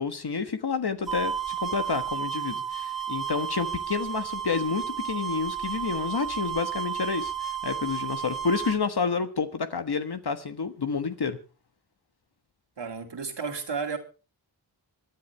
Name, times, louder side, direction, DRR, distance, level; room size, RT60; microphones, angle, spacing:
voice 1, 0.0-11.4, left 5 dB, 55° left, 1.3 m, -29 dB
sound 1, 1.1-8.8, right 9 dB, ahead, 2.8 m, -32 dB
voice 2, 12.8-14.0, right 5 dB, 65° right, 2.6 m, -32 dB
26.5 x 10.0 x 3.3 m
wide cardioid pair, 65°, 45 cm